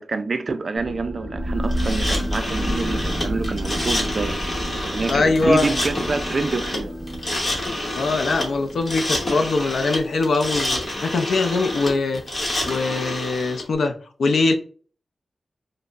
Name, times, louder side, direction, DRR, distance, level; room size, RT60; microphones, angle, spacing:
voice 1, 0.0-4.4 4.7-6.9, right 3 dB, 50° right, 0.3 m, -27 dB
sound 1, 0.8-11.9, equal, 20° right, 0.7 m, -30 dB
sound 2, 1.7-13.6, left 1 dB, 35° left, 1.0 m, -28 dB
voice 2, 5.1-5.7 7.9-12.3 12.7-14.5, left 3 dB, 90° left, 0.4 m, -22 dB
Acoustic guitar, 5.4-10.6, left 1 dB, 55° left, 0.9 m, -40 dB
5.1 x 2.1 x 2.4 m
wide cardioid pair, 135°, 0 cm